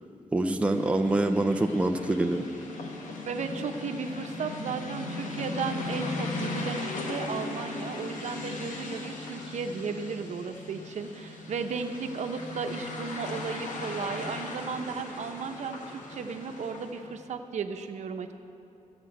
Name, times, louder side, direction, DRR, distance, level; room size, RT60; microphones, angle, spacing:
voice 1, 0.3-2.4, right 2 dB, 10° right, 5 dB, 0.4 m, -25 dB
sound 1, 0.6-17.1, left 3 dB, 80° left, 1.6 m, -38 dB
voice 2, 3.2-18.3, right 5 dB, 65° right, 6 dB, 0.8 m, -35 dB
13.0 x 8.8 x 7.9 m, 2.8 s
wide cardioid pair, 170°, 13 cm